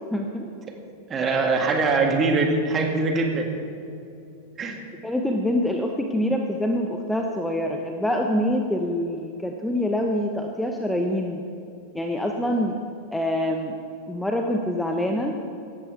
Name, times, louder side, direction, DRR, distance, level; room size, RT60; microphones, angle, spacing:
voice 1, 0.1-0.5 5.0-11.4 11.9-12.8 13.1-13.7 14.1-15.3, left 1 dB, 5° left, 2 dB, 1.0 m, -25 dB
voice 2, 1.1-3.5 4.6-4.8, right 3 dB, 25° right, 3 dB, 2.2 m, -22 dB
18.0 x 15.0 x 3.4 m, 2.7 s
figure-of-eight pair, 90°, 0 cm